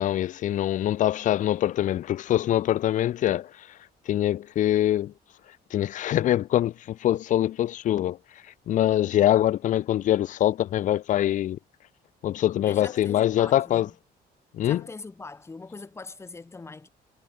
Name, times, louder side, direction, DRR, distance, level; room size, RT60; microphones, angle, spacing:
voice 1, 0.0-3.7 4.1-5.1 5.7-8.2 8.7-11.6 12.2-13.9 14.5-14.8, left 12 dB, 50° left, 0.5 m, -24 dB
voice 2, 12.6-14.0 14.6-16.9, left 3 dB, 15° left, 2.1 m, -41 dB
cardioid pair, 165°, 17 cm